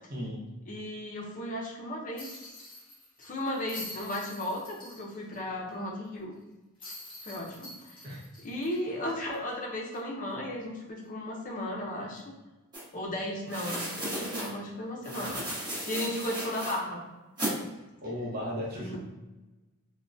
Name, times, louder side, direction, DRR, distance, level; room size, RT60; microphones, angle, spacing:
voice 1, 0.1-0.4 8.0-8.2 18.0-19.0, equal, 45° right, -4 dB, 0.8 m, -35 dB
voice 2, 0.7-2.6 3.2-6.3 7.3-12.3 12.9-17.0 18.7-19.0, left 1 dB, 40° left, -1 dB, 0.6 m, -35 dB
sound 1, 2.2-5.4 5.7-5.8 6.8-9.5 9.9-10.0 12.1-12.3, left 2 dB, 25° left, 1.0 m, -46 dB
sound 2, 12.7-12.8 13.5-14.5 15.0-16.8 17.4-17.6, right 1 dB, 20° right, 1.0 m, -35 dB
3.5 x 2.1 x 2.5 m, 1.1 s
head